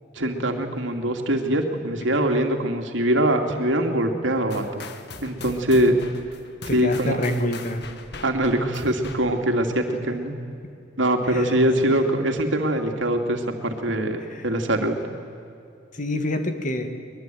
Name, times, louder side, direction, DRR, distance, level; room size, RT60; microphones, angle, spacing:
voice 1, 0.2-4.9 5.2-6.0 6.7-7.2 8.2-10.3 11.0-14.9, right 1 dB, 75° right, 4 dB, 2.6 m, -23 dB
sound 1, 4.5-9.6, left 4 dB, 60° left, 1.7 m, -41 dB
voice 2, 6.7-7.8 11.3-11.5 11.9-12.0 16.0-16.9, left 1 dB, 40° left, 6 dB, 2.2 m, -26 dB
23.5 x 21.0 x 9.3 m, 2.5 s
head